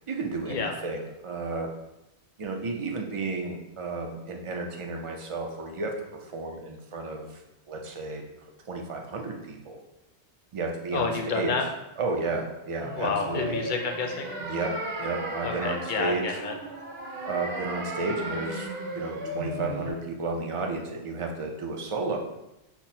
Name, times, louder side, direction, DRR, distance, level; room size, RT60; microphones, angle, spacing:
voice 1, 0.0-0.5 0.8-1.7 2.4-7.4 7.7-8.2 8.7-9.8 10.5-11.1 11.3-11.5 12.0-13.6 14.4-14.7 15.0-16.2 17.2-18.7 18.9-22.2, right 3 dB, 50° right, 2 dB, 0.4 m, -32 dB
voice 2, 10.9-11.7 13.0-14.3 15.4-16.5, left 4 dB, 55° left, 3 dB, 0.6 m, -29 dB
sound 1, 12.8-19.9, right 1 dB, 70° right, 0.9 m, -35 dB
5.8 x 2.0 x 2.7 m, 0.90 s
omnidirectional pair, 1.1 m